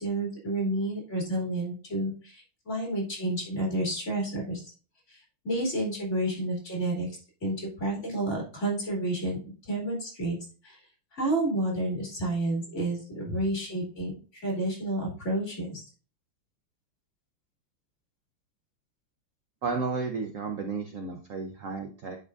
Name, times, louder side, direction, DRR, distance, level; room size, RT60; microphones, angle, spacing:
voice 1, 0.0-4.7 5.1-7.1 7.4-9.4 9.7-10.4 10.6-10.8 11.1-15.8, right 1 dB, 30° left, -3 dB, 3.3 m, -30 dB
voice 2, 19.6-22.2, right 4 dB, 75° right, 5 dB, 0.7 m, -32 dB
10.5 x 4.8 x 2.5 m, 0.37 s
omnidirectional pair, 2.4 m